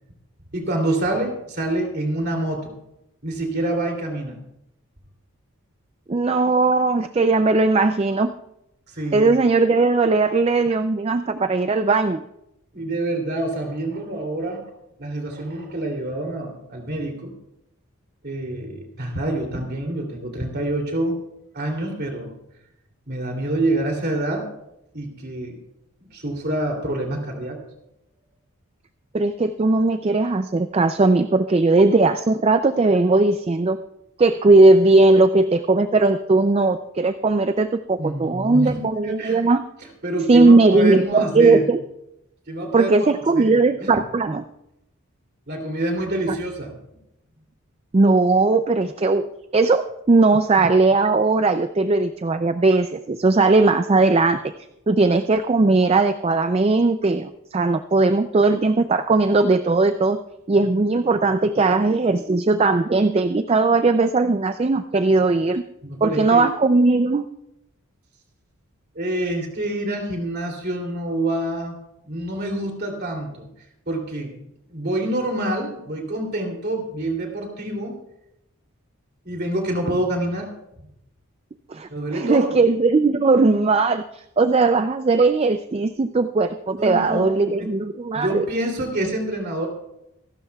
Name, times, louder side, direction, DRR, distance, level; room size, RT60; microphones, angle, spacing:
voice 1, 0.5-2.7 3.2-4.4 8.9-9.3 12.7-14.6 15.0-17.3 18.2-21.2 21.5-22.3 23.1-24.5 24.9-25.6 26.0-27.6 38.0-39.4 40.0-41.6 42.5-43.1 43.3-43.9 45.5-46.7 65.8-66.4 68.9-71.8 72.0-73.5 73.9-74.4 74.7-78.0 79.2-80.5 81.9-82.6 86.8-87.3 87.6-87.7 88.1-89.7, right 1 dB, 45° right, 2 dB, 2.9 m, -26 dB
voice 2, 6.1-8.3 9.1-12.2 29.1-33.8 34.2-39.6 40.3-41.8 42.7-44.4 46.3-46.4 47.9-49.2 49.5-54.4 54.9-60.2 60.5-65.6 66.0-67.3 81.7-88.5, right 3 dB, 25° right, 9 dB, 0.3 m, -18 dB
27.0 x 12.0 x 2.3 m, 0.84 s
head